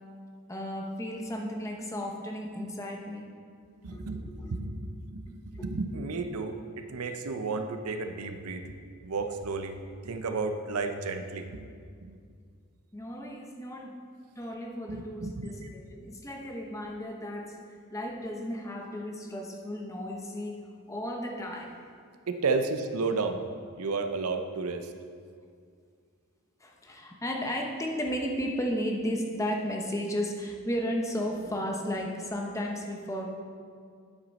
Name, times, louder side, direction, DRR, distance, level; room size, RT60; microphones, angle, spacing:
voice 1, 0.5-3.3 3.9-4.5 5.5-5.7 12.9-14.0 14.4-17.6 17.9-21.7 26.6-33.3, equal, 15° left, 1 dB, 0.8 m, -34 dB
voice 2, 3.8-8.7 9.0-11.5 12.0-12.2 14.9-15.6 22.3-23.4 23.7-24.9, right 4 dB, 85° right, 7 dB, 0.6 m, -32 dB
9.1 x 8.0 x 4.1 m, 2.2 s
head